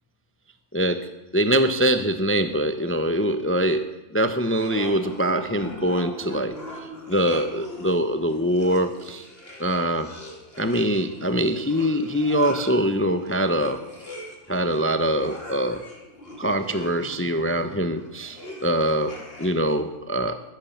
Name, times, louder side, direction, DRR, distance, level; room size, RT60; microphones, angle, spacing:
voice 1, 1.3-9.3 9.6-10.1 10.6-13.8 14.5-15.8 16.4-20.4, equal, 10° left, 9 dB, 0.7 m, -23 dB
sound 1, 4.4-19.8, left 1 dB, 40° left, 3.3 m, -41 dB
15.0 x 13.0 x 7.2 m, 1.1 s
omnidirectional pair, 1.5 m